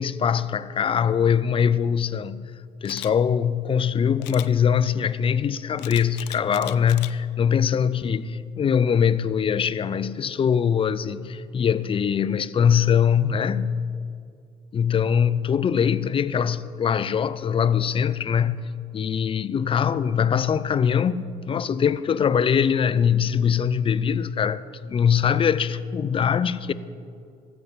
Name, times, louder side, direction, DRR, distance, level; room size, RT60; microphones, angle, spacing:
voice 1, 0.0-2.4 2.8-13.7 14.7-18.7 18.9-26.7, left 7 dB, 30° left, 0.4 m, -22 dB
Camera, 2.8-3.1 4.2-4.5 5.8-7.1 7.6-7.9, left 18 dB, 90° left, 0.5 m, -38 dB
14.5 x 7.0 x 7.2 m
cardioid pair, 110°, 17 cm